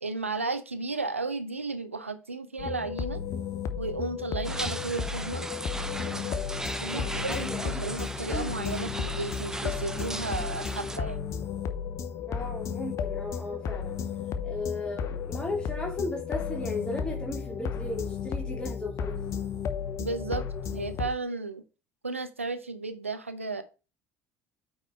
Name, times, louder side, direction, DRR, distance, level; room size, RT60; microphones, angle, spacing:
voice 1, 0.0-3.2 3.8-5.5 6.8-11.2 20.0-20.5 20.7-21.6 22.0-23.6, right 3 dB, 90° right, 0.7 m, -34 dB
sound 1, 2.6-21.1, left 7 dB, 45° left, 0.8 m, -34 dB
sound 2, 4.4-11.0, right 2 dB, 10° right, 0.7 m, -37 dB
voice 2, 6.9-7.9 8.3-8.7 12.2-14.0 14.4-19.2, left 2 dB, 15° left, 2.6 m, -36 dB
8.5 x 4.0 x 4.4 m
figure-of-eight pair, 60°, 7 cm